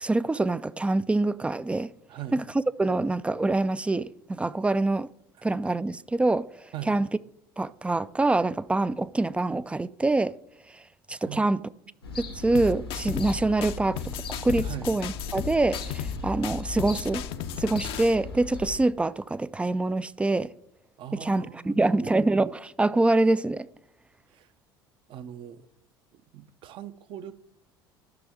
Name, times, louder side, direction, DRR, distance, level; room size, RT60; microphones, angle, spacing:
voice 1, 0.0-1.9 2.3-2.4 2.8-5.1 5.4-7.1 7.6-10.3 10.7-10.8 11.1-11.6 12.2-14.0 14.4-17.2 17.6-20.5 21.2-23.7, right 2 dB, 10° right, 0.3 m, -25 dB
voice 2, 11.2-11.6 14.6-14.9 21.0-22.2 24.3-24.5 25.1-25.7 26.1-27.3, right 11 dB, 45° right, 0.7 m, -40 dB
sound 1, 12.0-18.8, left 3 dB, 90° left, 1.4 m, -38 dB
sound 2, 12.5-13.3 13.6-16.2 16.4-18.1, left 10 dB, 50° left, 0.6 m, -35 dB
12.5 x 6.1 x 3.7 m
figure-of-eight pair, 65°, 12 cm